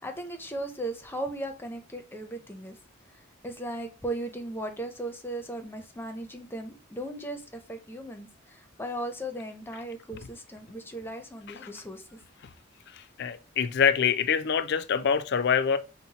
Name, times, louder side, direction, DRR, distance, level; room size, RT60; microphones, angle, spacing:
voice 1, 0.0-2.8 3.4-12.2, right 1 dB, 10° left, 0.6 m, -37 dB
voice 2, 12.9-15.8, left 7 dB, 55° left, 0.4 m, -25 dB
5.7 x 2.1 x 4.0 m
head